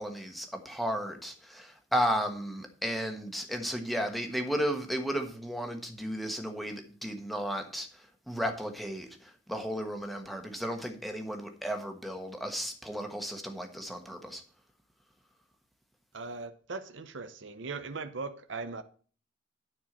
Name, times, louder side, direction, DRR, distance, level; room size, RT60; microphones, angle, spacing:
voice 1, 0.0-7.9 8.3-14.4, equal, ahead, 1.3 m, -34 dB
voice 2, 16.1-18.8, right 4 dB, 75° right, 0.7 m, -39 dB
9.7 x 4.5 x 7.3 m
head